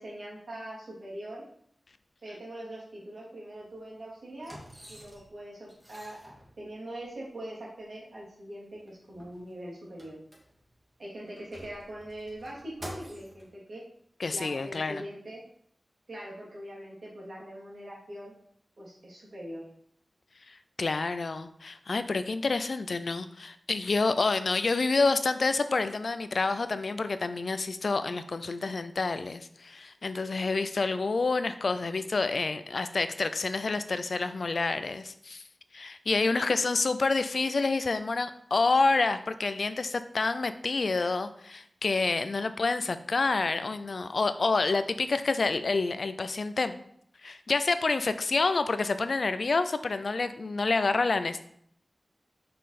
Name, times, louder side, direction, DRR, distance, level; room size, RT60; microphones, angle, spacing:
voice 1, 0.0-1.4 2.2-4.6 4.9-10.2 11.0-13.8 14.3-15.4 16.1-18.3 18.8-19.7 36.2-36.5, right 1 dB, 75° right, -5 dB, 2.9 m, -42 dB
sound 1, 3.5-3.7 4.4-5.4 5.7-7.0 7.8-7.9 8.2-8.3 8.7-10.8 11.3-13.5 14.3-14.4, equal, 25° right, 2.1 m, -48 dB
voice 2, 14.2-15.1 20.5-35.4 35.7-46.8 47.2-51.4, left 3 dB, 70° left, 11 dB, 0.5 m, -28 dB
5.7 x 5.2 x 4.2 m, 0.68 s
cardioid pair, 50°, 0 cm